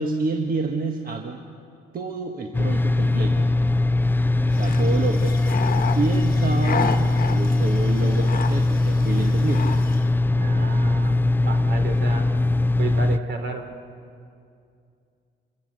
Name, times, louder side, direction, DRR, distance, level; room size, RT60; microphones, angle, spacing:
voice 1, 0.0-1.4 1.9-3.5 4.4-5.4 5.9-9.8, right 3 dB, 45° right, 3 dB, 1.4 m, -28 dB
sound 1, 2.5-13.2, left 2 dB, 10° left, 0.4 m, -21 dB
sound 2, 4.5-10.1, left 5 dB, 45° left, 1.3 m, -32 dB
voice 2, 10.3-11.2 11.4-12.3 12.8-13.7, right 3 dB, 65° right, 5 dB, 3.0 m, -31 dB
26.0 x 13.0 x 8.1 m, 2.4 s
cardioid pair, 90°, 20 cm